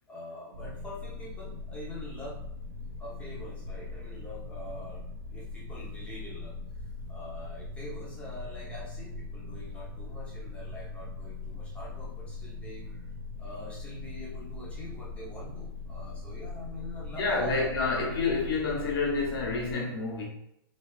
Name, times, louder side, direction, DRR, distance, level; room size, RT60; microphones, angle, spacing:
voice 1, 0.1-2.4 3.0-6.5 7.1-13.1 13.4-18.1, left 1 dB, 10° left, 1.0 m, -44 dB
sound 1, 0.5-19.7, left 3 dB, 65° right, 0.5 m, -40 dB
voice 2, 17.2-20.3, left 3 dB, 80° left, 1.3 m, -28 dB
4.1 x 2.7 x 2.5 m
hypercardioid pair, 160°, 12 cm